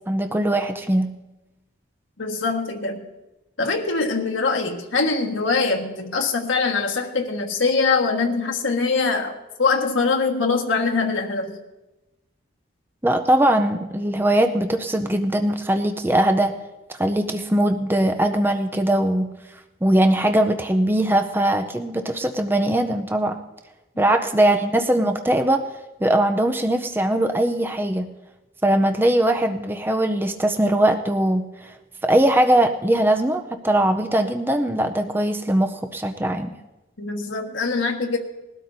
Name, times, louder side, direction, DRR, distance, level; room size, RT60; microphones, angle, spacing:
voice 1, 0.1-1.1 13.0-16.5 16.9-19.3 19.8-23.4 24.0-25.6 26.0-28.1 28.6-31.7 32.0-36.5, right 1 dB, 10° right, 5 dB, 0.5 m, -20 dB
voice 2, 2.2-3.0 3.6-11.6 37.0-38.2, left 4 dB, 80° left, 3 dB, 1.6 m, -23 dB
21.0 x 12.5 x 2.7 m, 1.0 s
head